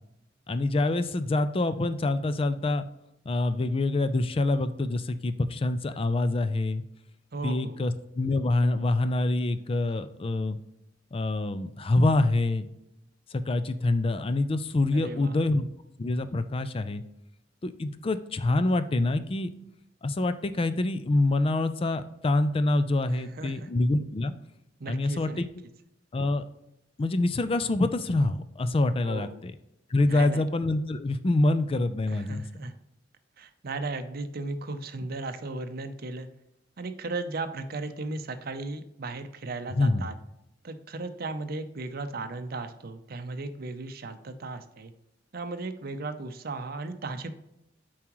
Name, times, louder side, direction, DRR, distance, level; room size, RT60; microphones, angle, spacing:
voice 1, 0.5-2.9 3.3-6.8 7.4-10.6 11.1-12.7 13.3-15.7 16.0-17.0 17.6-19.5 20.0-24.3 24.9-25.4 26.1-26.4 27.0-29.5 29.9-32.4 39.7-40.1, left 2 dB, 30° left, 11 dB, 0.4 m, -26 dB
voice 2, 7.3-7.8 14.9-15.4 23.1-23.7 24.8-25.4 29.0-29.4 30.0-30.4 32.1-32.7 33.4-36.3 36.8-40.1 40.6-44.9 45.3-47.3, right 3 dB, 55° right, 9 dB, 0.6 m, -36 dB
7.2 x 4.8 x 3.0 m, 0.85 s
head